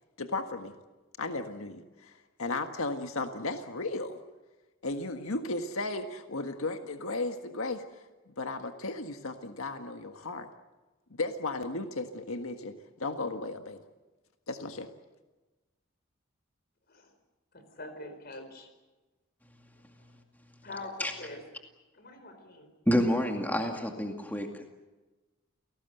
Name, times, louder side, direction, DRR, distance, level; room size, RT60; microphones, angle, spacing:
voice 1, 0.2-0.7 1.2-4.2 4.8-7.8 8.4-10.5 11.1-13.8 14.5-14.9, left 2 dB, 85° left, 6 dB, 1.6 m, -35 dB
voice 2, 17.5-18.7 20.6-21.4 21.9-22.7, left 2 dB, 50° left, 8 dB, 4.6 m, -44 dB
voice 3, 22.9-24.5, equal, 10° left, 3 dB, 2.2 m, -28 dB
29.0 x 19.0 x 8.0 m, 1.2 s
head